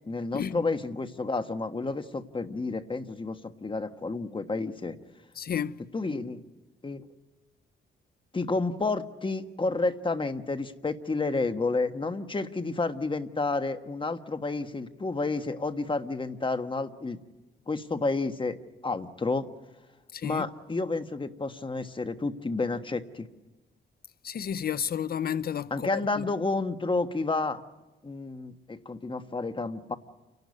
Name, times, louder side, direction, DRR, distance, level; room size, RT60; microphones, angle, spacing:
voice 1, 0.1-5.0 5.9-6.4 6.8-7.1 8.3-17.2 17.7-18.6 18.8-19.4 20.2-23.3 25.7-27.6 28.0-30.0, left 3 dB, 25° left, 1.5 m, -30 dB
voice 2, 5.4-5.8 20.1-20.5 24.2-25.9 26.2-26.3, left 9 dB, 55° left, 0.6 m, -31 dB
29.0 x 12.0 x 9.7 m
cardioid pair, 90°, 19 cm